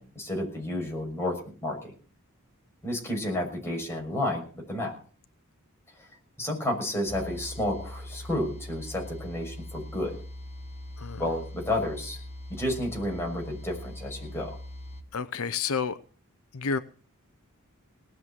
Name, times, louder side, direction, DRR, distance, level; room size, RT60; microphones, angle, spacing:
voice 1, 0.0-1.9 2.8-4.9 6.0-6.1 6.4-10.2 11.2-12.2 12.5-14.6, left 1 dB, 10° left, 0 dB, 6.2 m, -31 dB
sound 1, 7.1-15.0, left 1 dB, 30° left, 1.6 m, -41 dB
voice 2, 15.1-16.0 16.5-16.8, left 5 dB, 70° left, 13 dB, 0.7 m, -30 dB
19.0 x 7.4 x 8.2 m, 0.40 s
head